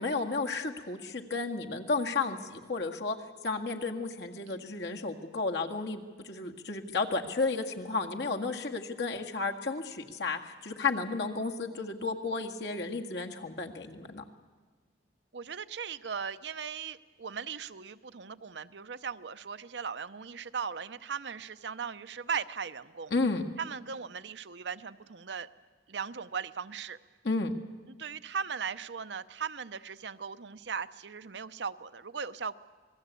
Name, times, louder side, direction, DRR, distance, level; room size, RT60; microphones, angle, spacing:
voice 1, 0.0-3.2 3.4-14.2 23.1-23.4 27.2-27.6, left 3 dB, 75° left, 2 dB, 1.9 m, -32 dB
voice 2, 15.3-23.1 23.6-25.5 25.9-27.0 27.9-32.6, right 6 dB, 80° right, 12 dB, 0.8 m, -38 dB
27.0 x 20.0 x 8.4 m, 1.4 s
head